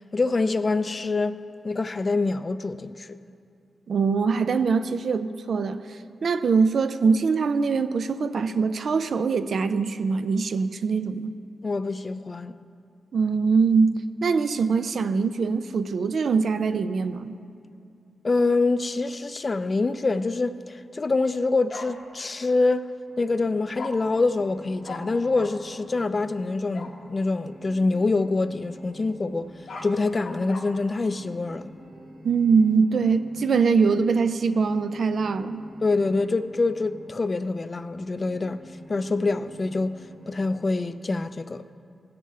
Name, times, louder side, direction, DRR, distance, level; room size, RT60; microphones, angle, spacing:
voice 1, 0.0-3.2 11.6-12.6 18.2-22.9 23.2-29.5 29.8-31.7 35.8-38.6 38.9-40.0 40.3-41.6, left 3 dB, 40° left, 0.4 m, -25 dB
voice 2, 3.9-11.3 13.1-17.4 32.2-35.6, right 5 dB, 70° right, 0.4 m, -23 dB
Bark, 21.7-21.9 23.8-23.9 24.8-25.0 25.3-25.5 26.7-26.9 29.4-30.6, left 4 dB, 80° left, 1.1 m, -37 dB
sound 1, 23.1-41.0, equal, 45° right, 1.8 m, -49 dB
16.5 x 6.8 x 3.2 m
cardioid pair, 60°, 0 cm